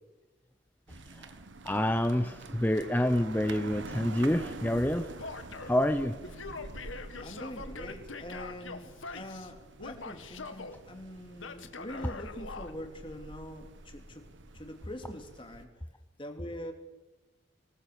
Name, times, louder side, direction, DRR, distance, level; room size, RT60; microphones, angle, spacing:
sound 1, 0.9-15.6, right 2 dB, 75° right, 1.3 m, -47 dB
voice 1, 1.6-5.2 5.7-6.2, left 1 dB, 10° left, 7 dB, 0.7 m, -28 dB
Male speech man speaking / Yell, 5.2-5.8 6.2-9.5 9.8-10.8 11.4-12.7, left 3 dB, 90° left, 1.8 m, -43 dB
voice 2, 7.2-15.8 16.2-16.7, equal, 25° left, 4 dB, 2.9 m, -44 dB
25.5 x 19.5 x 6.8 m, 1.1 s
head